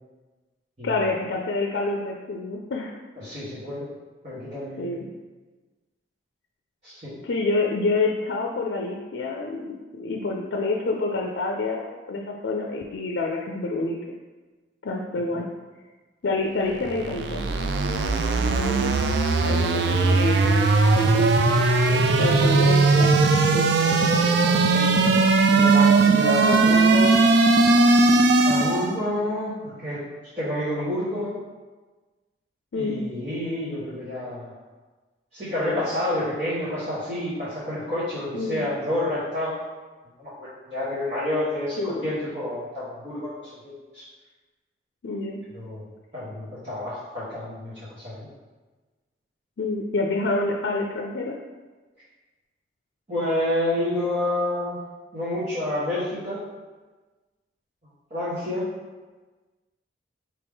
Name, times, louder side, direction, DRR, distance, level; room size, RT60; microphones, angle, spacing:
voice 1, 0.8-3.0 4.8-5.1 7.2-14.0 14.8-15.4 16.2-17.4 18.3-19.0 19.4-20.7 20.9-21.3 22.2-23.2 23.5-23.7 26.4-26.6 32.7-33.0 38.3-38.6 41.8-42.1 45.0-45.4 49.6-51.4, left 3 dB, 80° left, 0 dB, 0.4 m, -27 dB
voice 2, 3.2-3.9 4.2-4.9 6.8-7.2 15.1-15.3 21.9-22.7 23.8-27.1 28.4-30.0 30.4-31.4 32.7-34.5 35.3-39.6 40.2-44.0 45.5-45.8 46.1-48.3 53.1-54.8 55.1-56.4 58.1-58.7, left 1 dB, 35° right, -13 dB, 1.3 m, -29 dB
sound 1, 16.7-29.0, right 3 dB, 65° right, 0.3 m, -19 dB
4.7 x 3.0 x 3.5 m, 1.3 s
head